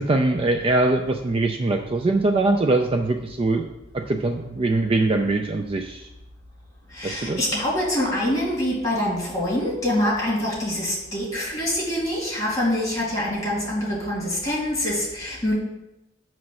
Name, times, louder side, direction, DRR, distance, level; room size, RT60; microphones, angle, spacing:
voice 1, 0.0-3.7 3.9-6.1 7.0-7.4, right 2 dB, 30° right, 5 dB, 0.3 m, -22 dB
voice 2, 7.0-15.5, left 1 dB, 20° left, -6 dB, 2.4 m, -25 dB
7.3 x 3.1 x 6.1 m, 0.96 s
head